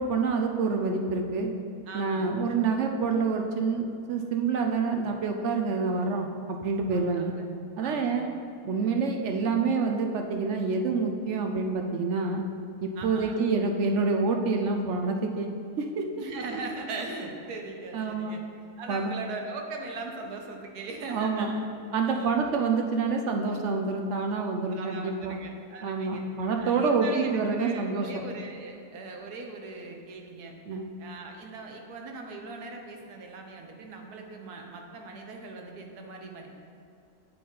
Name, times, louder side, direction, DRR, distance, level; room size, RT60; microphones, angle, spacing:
voice 1, 0.0-1.5 1.9-7.3 7.8-8.3 8.7-12.4 12.8-15.5 15.8-16.1 17.9-18.4 18.9-19.2 21.1-21.5 21.9-25.4 25.8-28.1 30.7-30.9, right 4 dB, 65° right, 3 dB, 0.8 m, -27 dB
voice 2, 1.9-2.4 6.9-7.3 7.8-8.4 8.6-8.9 13.0-13.4 16.2-18.4 18.8-21.6 22.0-22.4 24.7-26.2 26.6-30.5 31.0-36.5, right 3 dB, 85° right, 2 dB, 1.4 m, -40 dB
8.4 x 3.9 x 5.4 m, 2.7 s
omnidirectional pair, 1.6 m